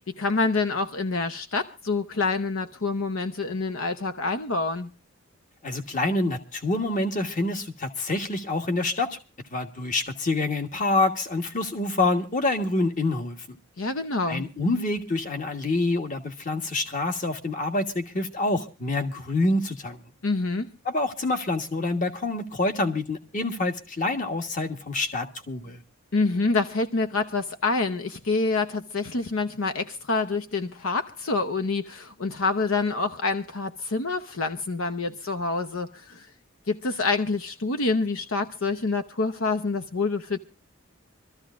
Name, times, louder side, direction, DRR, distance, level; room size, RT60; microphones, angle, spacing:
voice 1, 0.1-4.9 13.8-14.5 20.2-20.7 26.1-36.3 36.7-40.4, left 3 dB, 75° left, 0.8 m, -27 dB
voice 2, 5.6-9.2 9.5-13.6 14.3-20.0 20.8-25.8, left 2 dB, 40° left, 1.4 m, -27 dB
26.0 x 13.5 x 2.5 m
head